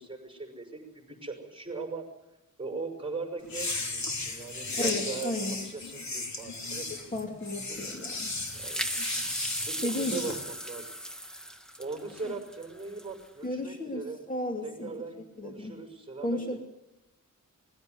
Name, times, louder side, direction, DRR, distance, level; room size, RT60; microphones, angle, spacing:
voice 1, 0.0-2.0 2.6-6.9 7.6-8.0 8.5-8.8 9.6-10.9 11.8-14.2 14.6-16.6, right 4 dB, 15° right, 2 dB, 5.9 m, -39 dB
sound 1, 3.4-10.4, left 3 dB, 60° left, 3.2 m, -35 dB
voice 2, 4.8-5.6 7.1-8.3 9.8-10.3 13.4-14.9 15.4-15.7 16.2-16.6, left 1 dB, 25° left, 2 dB, 2.6 m, -33 dB
sound 2, 7.8-13.3, equal, ahead, 1.5 m, -37 dB
22.0 x 16.0 x 9.6 m, 0.95 s
wide cardioid pair, 125°, 31 cm